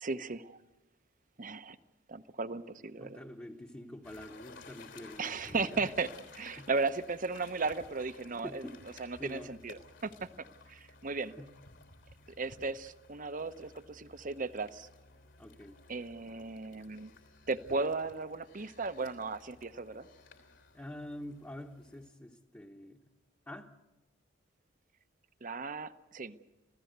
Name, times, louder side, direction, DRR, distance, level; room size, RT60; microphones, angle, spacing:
voice 1, 0.0-0.6 1.4-1.8 2.1-3.2 5.2-8.7 9.0-10.3 10.7-11.3 12.4-14.9 15.9-17.1 17.5-20.1 25.4-26.4, right 3 dB, 45° right, 12 dB, 0.9 m, -36 dB
voice 2, 3.0-5.9 6.6-6.7 8.4-8.8 9.2-9.5 11.4-11.5 15.4-15.8 20.7-23.0 23.5-23.7, left 1 dB, 10° left, 0 dB, 1.0 m, -46 dB
sound 1, 4.0-22.1, left 3 dB, 75° left, 3.3 m, -56 dB
27.0 x 16.5 x 8.0 m, 1.0 s
head